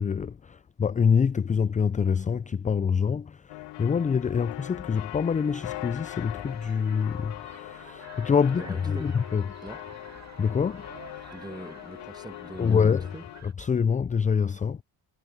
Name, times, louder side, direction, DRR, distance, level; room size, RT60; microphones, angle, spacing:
voice 1, 0.0-9.5 10.4-10.9 12.6-13.1 13.4-14.8, left 6 dB, 20° left, 0.4 m, -26 dB
sound 1, 3.5-13.4, left 17 dB, 65° left, 0.7 m, -41 dB
sound 2, 5.2-13.5, right 5 dB, 35° right, 2.5 m, -50 dB
voice 2, 8.5-9.1 9.6-9.8 11.3-13.2, right 2 dB, 10° right, 1.7 m, -42 dB
supercardioid pair, 65°, 45 cm